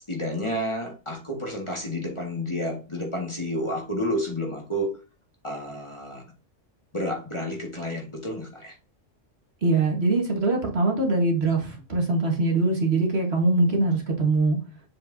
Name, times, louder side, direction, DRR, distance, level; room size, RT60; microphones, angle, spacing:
voice 1, 0.1-5.0 5.4-6.2 6.9-8.7, equal, 25° left, 1.9 m, -30 dB
voice 2, 9.6-14.6, right 2 dB, 55° right, 1.8 m, -23 dB
7.3 x 5.3 x 2.7 m
omnidirectional pair, 1.3 m